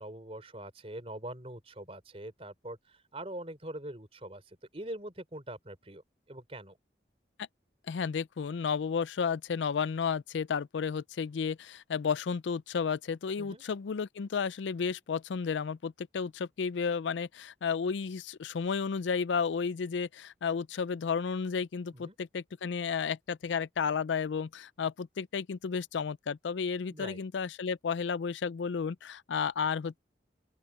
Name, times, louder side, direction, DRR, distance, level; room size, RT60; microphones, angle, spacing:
voice 1, 0.0-6.0 6.3-6.8 13.4-13.6 21.9-22.2 26.9-27.2, right 1 dB, 35° right, 4.1 m, -43 dB
voice 2, 7.9-30.0, left 6 dB, 90° left, 0.4 m, -32 dB
open air
head